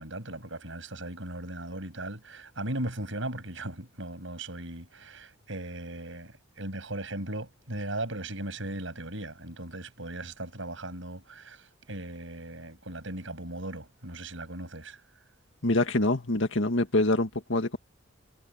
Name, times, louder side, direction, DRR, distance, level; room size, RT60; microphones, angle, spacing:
voice 1, 0.0-15.0, right 1 dB, 70° right, 7.6 m, -38 dB
voice 2, 15.6-17.8, left 2 dB, 65° left, 2.0 m, -25 dB
head